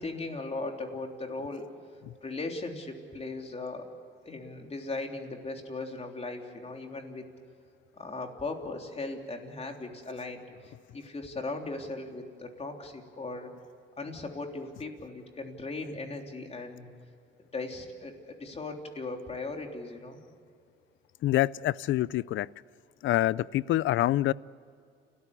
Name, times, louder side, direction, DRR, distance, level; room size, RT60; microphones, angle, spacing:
voice 1, 0.0-1.7 2.2-3.9 4.2-7.3 7.9-13.5 14.0-16.9 17.5-20.2, left 3 dB, 30° left, 3 dB, 3.5 m, -38 dB
voice 2, 21.2-22.5 23.0-24.3, left 15 dB, 75° left, 22 dB, 0.5 m, -26 dB
29.5 x 14.0 x 8.4 m, 2.4 s
cardioid pair, 90°, 20 cm